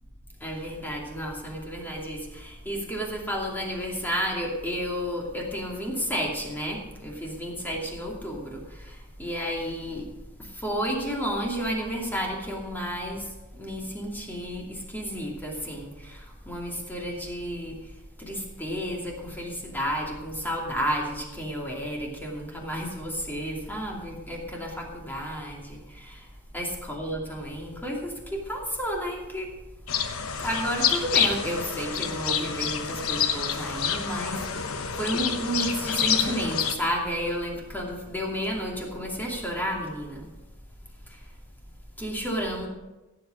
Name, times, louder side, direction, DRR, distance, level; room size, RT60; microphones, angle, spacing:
voice 1, 0.4-10.1 10.4-13.3 13.5-17.8 18.2-26.3 26.5-29.5 30.4-40.3 41.1-41.2 42.0-42.7, equal, 10° left, -1 dB, 2.6 m, -32 dB
sound 1, 29.9-36.8, left 7 dB, 80° left, 1.0 m, -28 dB
16.0 x 8.1 x 5.1 m, 1.1 s
head